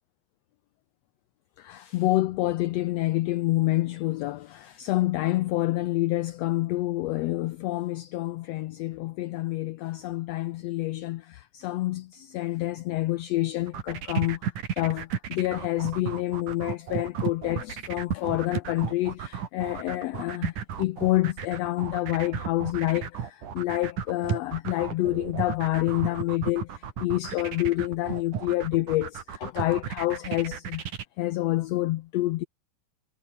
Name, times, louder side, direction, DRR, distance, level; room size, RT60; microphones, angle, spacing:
voice 1, 1.6-30.9 31.2-32.4, left 17 dB, 80° left, 1.5 m, -28 dB
sound 1, 13.6-31.0, right 8 dB, 85° right, 4.1 m, -34 dB
omnidirectional pair, 3.5 m